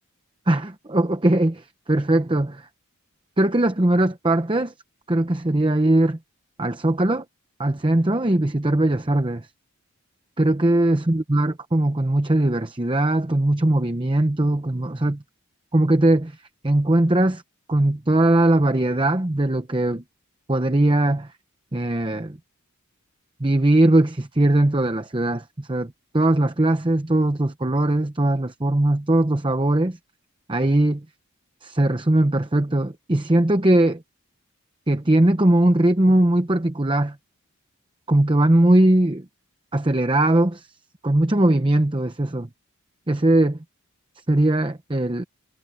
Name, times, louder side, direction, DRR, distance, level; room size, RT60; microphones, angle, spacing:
voice 1, 0.5-2.7 3.4-4.7 5.1-6.2 6.6-7.2 7.6-9.5 10.4-15.2 15.7-16.4 16.6-17.4 17.7-20.0 20.5-21.3 21.7-22.4 23.4-30.0 30.5-31.0 31.6-34.0 34.9-37.2 38.1-39.2 39.7-40.7 41.0-42.5 43.1-43.6 44.3-45.2, right 1 dB, 20° right, 0.8 m, -20 dB
head